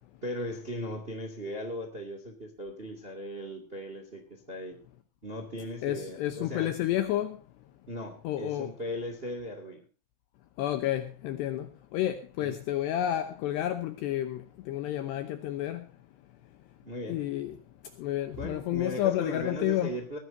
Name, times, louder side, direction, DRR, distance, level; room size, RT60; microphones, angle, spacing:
voice 1, 0.2-4.8 5.2-6.7 7.9-9.9 12.4-12.6 16.8-17.2 18.4-20.2, equal, 55° right, 0.6 m, -38 dB
voice 2, 5.8-7.4 8.2-8.7 10.6-15.9 17.1-17.5 18.0-20.0, left 13 dB, 75° left, 2.6 m, -30 dB
20.5 x 15.0 x 2.7 m
omnidirectional pair, 5.8 m